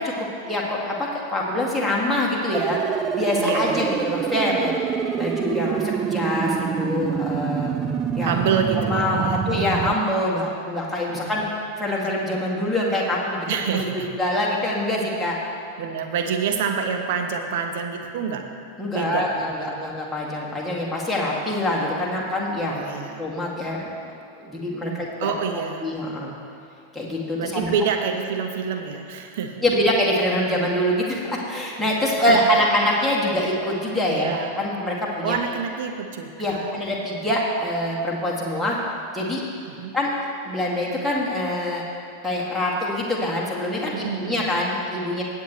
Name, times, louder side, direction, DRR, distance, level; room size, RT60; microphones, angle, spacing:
voice 1, 0.0-2.8 3.1-4.7 5.2-7.7 8.1-8.3 8.9-11.4 11.8-13.5 13.7-13.8 14.2-15.4 18.8-22.8 23.2-25.3 25.8-26.3 26.9-27.7 29.6-35.4 36.4-38.8 39.1-39.4 39.9-40.1 40.4-41.8 42.2-45.2, left 1 dB, ahead, -6 dB, 2.1 m, -25 dB
sound 1, 2.5-9.9, right 8 dB, 25° right, 0.4 m, -26 dB
voice 2, 3.4-3.8 8.2-9.4 11.1-11.4 13.5-14.1 15.8-18.5 18.9-19.9 22.7-23.2 24.9-25.8 27.4-29.6 32.0-32.4 34.1-34.5 35.2-36.7 39.7-40.0 43.9-44.5, right 6 dB, 50° right, 5 dB, 0.9 m, -27 dB
18.0 x 7.9 x 3.1 m, 2.5 s
figure-of-eight pair, 90°, 0 cm